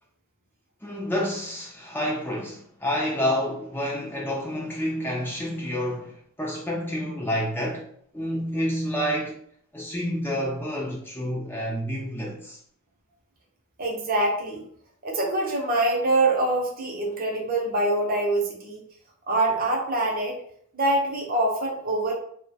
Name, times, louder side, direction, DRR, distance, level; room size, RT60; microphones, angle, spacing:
voice 1, 0.8-7.9 8.1-9.4 9.7-12.6, equal, 10° left, 0.4 m, -29 dB
voice 2, 13.8-14.6 15.0-18.8 19.3-20.4 20.7-22.1, right 2 dB, 40° right, 0.6 m, -24 dB
2.8 x 2.1 x 2.7 m
head